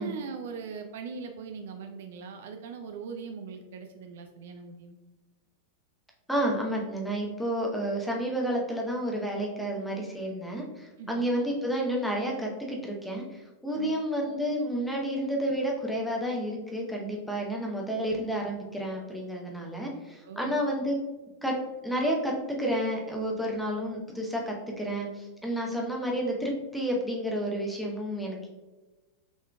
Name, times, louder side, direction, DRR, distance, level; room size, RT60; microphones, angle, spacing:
voice 1, 0.0-5.0 11.0-11.2 13.8-14.0 20.2-20.5 25.7-25.8, right 5 dB, 55° right, 5 dB, 0.4 m, -40 dB
voice 2, 6.3-21.0 21.4-21.5 21.8-22.3 22.6-28.5, equal, ahead, -1 dB, 0.9 m, -30 dB
6.1 x 3.6 x 2.3 m, 1.2 s
figure-of-eight pair, 90°, 0 cm